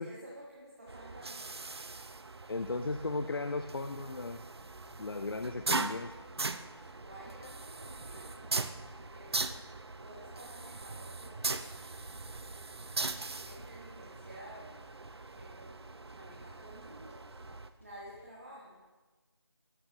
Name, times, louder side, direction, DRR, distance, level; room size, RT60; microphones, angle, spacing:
voice 1, 0.0-1.6 7.0-8.5 8.9-9.5 10.0-11.6 13.3-14.9 15.3-18.8, right 1 dB, 35° right, -5 dB, 1.2 m, -52 dB
sound 1, 0.9-17.7, right 3 dB, 70° right, 0.5 m, -40 dB
voice 2, 2.5-4.5 5.0-6.2, left 3 dB, 60° left, 9 dB, 0.4 m, -36 dB
sound 2, 3.8-17.2, left 1 dB, 80° left, 1.8 m, -62 dB
sound 3, 4.5-18.2, equal, 30° left, 1.6 m, -58 dB
13.5 x 5.6 x 3.1 m, 1.3 s
figure-of-eight pair, 175°, 14 cm